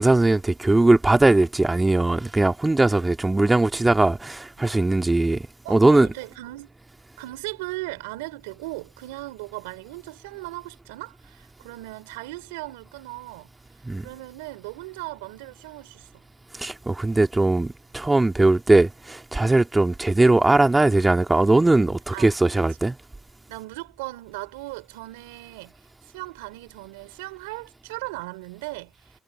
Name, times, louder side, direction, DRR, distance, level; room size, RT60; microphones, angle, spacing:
voice 1, 0.0-6.1 13.8-14.1 16.5-22.9, right 2 dB, 20° right, 2.2 m, -20 dB
voice 2, 5.6-6.7 7.2-13.5 14.0-16.1 22.1-22.9 23.5-25.7 26.0-29.2, right 21 dB, 90° right, 3.6 m, -37 dB
hypercardioid pair, 45°, 0 cm